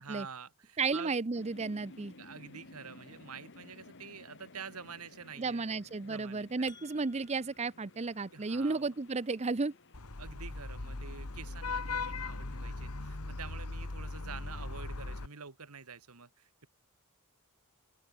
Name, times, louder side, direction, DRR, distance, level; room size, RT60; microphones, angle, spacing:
voice 1, 0.0-1.1 2.2-6.7 8.3-8.8 10.2-16.7, right 5 dB, 85° right, 1.8 m, -48 dB
voice 2, 0.8-2.1 5.4-9.7, right 4 dB, 30° right, 0.6 m, -33 dB
sound 1, 1.3-12.7, left 2 dB, 55° left, 1.9 m, -56 dB
sound 2, 6.7-7.7, left 4 dB, 20° left, 2.8 m, -58 dB
Vehicle horn car horn honking / Traffic noise roadway noise, 9.9-15.3, left 3 dB, 90° left, 1.7 m, -39 dB
open air
head